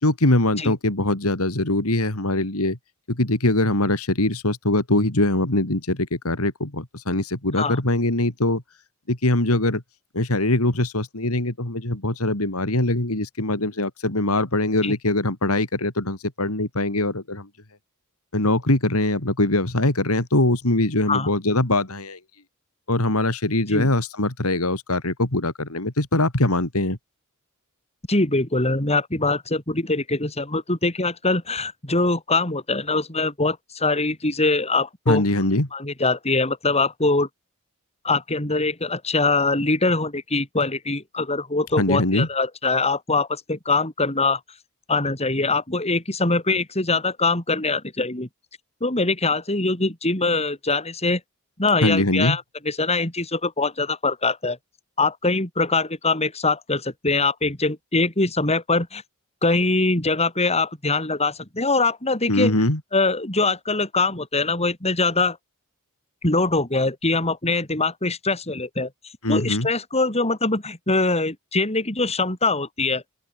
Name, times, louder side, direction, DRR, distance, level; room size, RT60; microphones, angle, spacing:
voice 1, 0.0-2.8 3.1-8.6 9.1-9.8 10.1-17.5 18.3-22.2 22.9-27.0 35.1-35.7 41.8-42.3 51.8-52.4 62.3-62.8 69.2-69.7, left 1 dB, 75° left, 3.5 m, -22 dB
voice 2, 28.1-35.2 35.7-37.3 38.0-44.4 44.9-48.3 48.8-51.2 51.6-54.6 55.0-59.0 59.4-62.5 62.9-65.4 66.2-68.9 69.3-73.0, left 3 dB, 30° left, 5.3 m, -23 dB
open air
head